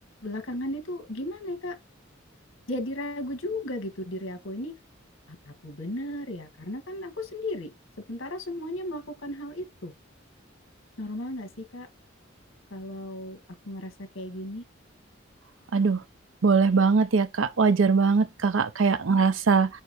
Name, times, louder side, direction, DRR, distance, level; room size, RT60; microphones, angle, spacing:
voice 1, 0.2-1.7 2.7-4.7 5.4-7.7 8.1-9.9 11.0-11.9 12.7-13.4 13.6-14.6, left 1 dB, 75° left, 1.7 m, -35 dB
voice 2, 16.4-19.7, right 4 dB, 75° right, 0.6 m, -21 dB
6.3 x 2.9 x 5.1 m
head